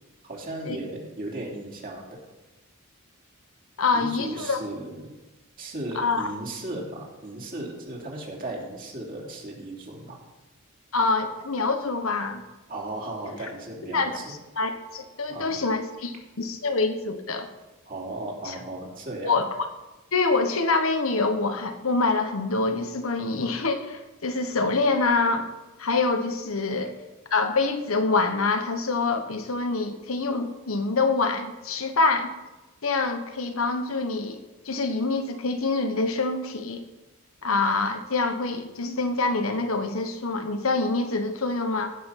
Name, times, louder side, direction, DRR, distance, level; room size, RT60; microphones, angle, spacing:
voice 1, 0.2-2.2 3.9-5.1 5.6-10.2 12.7-14.3 15.3-15.6 17.9-19.3, right 2 dB, 40° right, -2 dB, 2.9 m, -36 dB
voice 2, 3.8-4.6 5.9-6.3 10.9-12.4 13.8-14.2 14.6-17.5 18.4-18.5 19.2-19.5 20.1-25.5 25.8-26.9 27.3-32.3 32.8-34.4 34.6-36.8 37.4-41.9, left 3 dB, 70° left, 7 dB, 1.1 m, -25 dB
16.5 x 5.9 x 5.8 m, 1.1 s
head